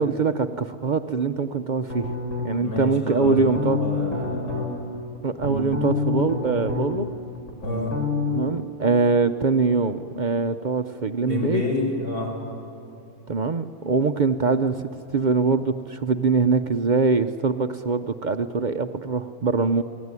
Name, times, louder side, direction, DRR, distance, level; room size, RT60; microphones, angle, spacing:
voice 1, 0.0-2.1 2.4-4.2 5.2-7.1 8.3-11.6 13.3-19.8, right 4 dB, 50° right, 8 dB, 0.5 m, -23 dB
sound 1, 1.9-2.7 3.2-4.7 5.2-7.1 7.3-8.4, left 3 dB, 55° left, 4.2 m, -27 dB
voice 2, 2.6-4.7 7.6-7.9 11.2-12.3, left 3 dB, 85° left, -1 dB, 6.4 m, -29 dB
28.0 x 19.0 x 9.6 m, 2.6 s
omnidirectional pair, 1.6 m